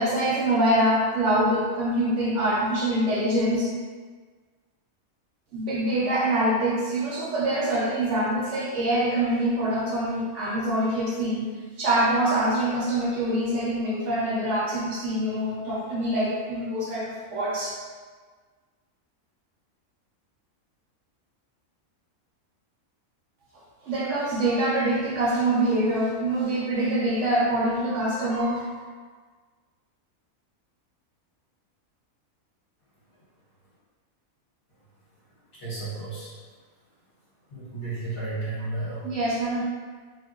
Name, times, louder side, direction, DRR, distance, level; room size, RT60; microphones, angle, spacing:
voice 1, 0.0-3.7 5.5-11.5 11.8-17.8 23.8-28.8 39.0-39.6, right 1 dB, 65° right, -5 dB, 1.0 m, -25 dB
voice 2, 35.6-36.3 37.5-39.1, right 2 dB, 55° left, -10 dB, 2.0 m, -33 dB
3.9 x 2.5 x 3.0 m, 1.5 s
omnidirectional pair, 1.5 m